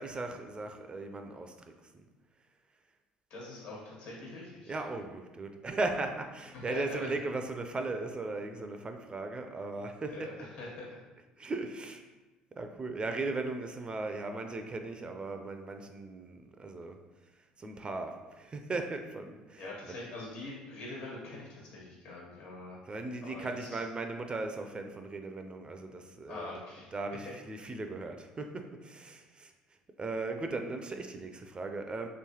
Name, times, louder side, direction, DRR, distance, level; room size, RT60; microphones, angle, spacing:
voice 1, 0.0-1.5 1.9-2.0 4.7-10.3 11.4-12.0 12.6-17.0 17.6-19.6 19.9-20.0 22.9-26.6 26.9-29.5 30.0-32.1, right 3 dB, 25° right, 5 dB, 0.4 m, -37 dB
voice 2, 3.3-4.8 6.5-7.1 10.1-11.0 19.6-22.8 23.2-23.8 26.3-26.9, left 2 dB, 70° left, -5 dB, 1.4 m, -43 dB
3.2 x 3.1 x 2.8 m, 1.2 s
hypercardioid pair, 65°, 4 cm